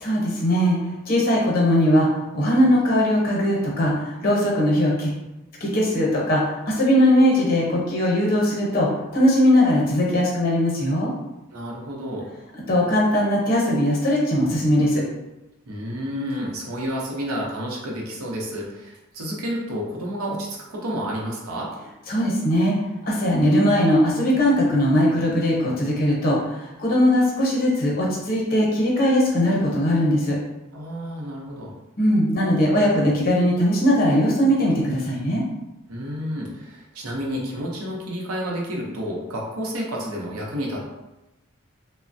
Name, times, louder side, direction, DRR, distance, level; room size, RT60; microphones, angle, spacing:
voice 1, 0.0-5.1 5.6-11.1 12.7-15.0 22.1-22.7 23.1-30.4 32.0-35.4, equal, 40° left, -3 dB, 0.7 m, -20 dB
voice 2, 11.5-12.3 15.6-21.7 30.7-31.7 35.9-40.8, equal, 85° right, -2 dB, 0.7 m, -30 dB
3.1 x 2.0 x 2.5 m, 0.97 s
head